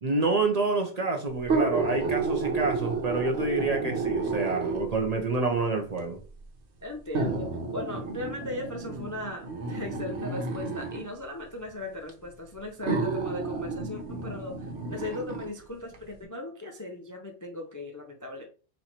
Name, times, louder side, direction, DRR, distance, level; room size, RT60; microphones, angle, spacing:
voice 1, 0.0-6.2, right 3 dB, 45° right, 0.7 m, -28 dB
sound 1, 1.4-5.1 6.0-6.1 7.1-11.1 12.1-12.2 12.8-15.5 15.9-16.0, right 4 dB, 85° right, 1.2 m, -31 dB
voice 2, 6.8-18.5, left 2 dB, 25° left, 0.4 m, -38 dB
4.3 x 2.6 x 4.3 m
omnidirectional pair, 1.1 m